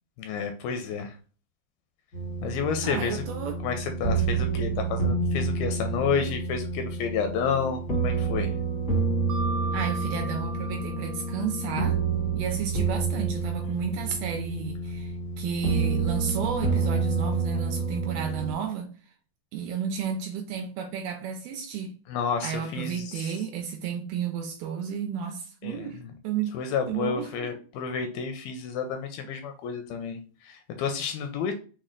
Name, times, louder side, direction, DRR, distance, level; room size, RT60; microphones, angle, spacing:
voice 1, 0.2-1.2 2.4-3.2 3.6-8.5 22.1-23.3 25.6-26.1 26.5-31.5, left 6 dB, 85° left, 2.3 m, -30 dB
sound 1, 2.1-18.5, right 4 dB, 60° left, 0.8 m, -28 dB
voice 2, 2.8-3.7 9.7-12.0 12.3-18.9 19.5-22.0 22.4-26.5 26.9-27.5, right 7 dB, 80° right, 2.2 m, -32 dB
Mallet percussion, 9.3-12.1, right 2 dB, 65° right, 2.1 m, -38 dB
6.2 x 2.2 x 3.6 m
omnidirectional pair, 4.6 m